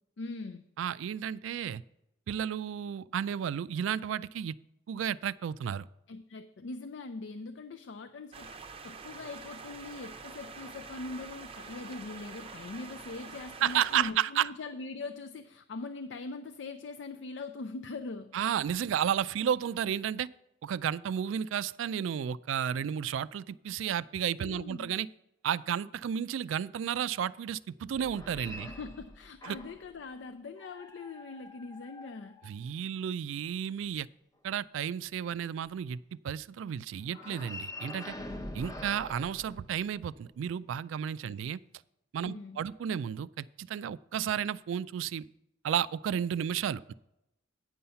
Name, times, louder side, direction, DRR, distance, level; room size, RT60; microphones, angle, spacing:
voice 1, 0.2-0.6 6.1-8.5 8.8-18.4 24.4-24.9 28.5-32.4 41.3-41.4 42.2-42.6, left 3 dB, 70° left, 8 dB, 0.4 m, -42 dB
voice 2, 0.8-1.8 2.3-4.5 4.9-5.9 13.6-14.5 18.3-20.3 20.6-25.1 25.4-28.7 29.4-29.6 32.4-34.1 34.4-38.1 38.5-41.6 42.1-45.2 45.6-46.9, right 9 dB, 80° right, 19 dB, 0.3 m, -32 dB
sound 1, 8.3-14.1, right 5 dB, 30° right, 0.6 m, -46 dB
sound 2, 27.9-29.9 30.6-33.0 37.1-40.2, left 1 dB, 15° left, 0.7 m, -45 dB
9.4 x 5.6 x 5.6 m, 0.85 s
head